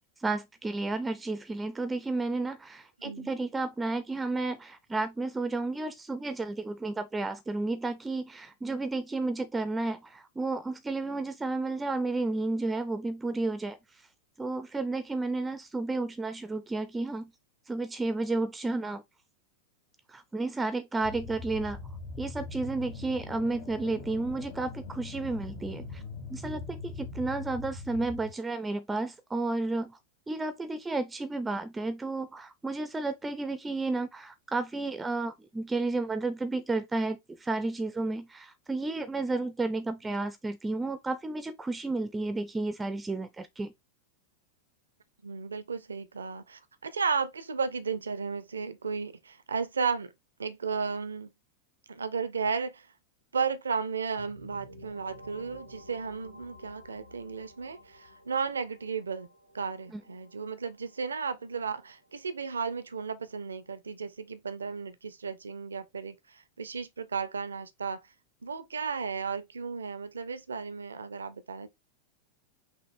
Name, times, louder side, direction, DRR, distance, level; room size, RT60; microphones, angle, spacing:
voice 1, 0.2-13.8 14.4-17.3 17.7-19.0 20.1-21.8 22.2-26.0 26.3-30.0 30.3-43.7 59.9-60.0, right 3 dB, 10° right, 0.4 m, -32 dB
voice 2, 3.0-3.3 45.2-50.1 50.4-51.3 51.9-52.9 53.3-59.3 59.5-68.0 68.4-71.7, right 5 dB, 75° right, 0.4 m, -34 dB
sound 1, 21.0-28.3, left 3 dB, 55° left, 2.1 m, -42 dB
sound 2, 54.2-63.7, equal, 75° left, 0.9 m, -53 dB
5.9 x 2.4 x 3.4 m
figure-of-eight pair, 90°, 0 cm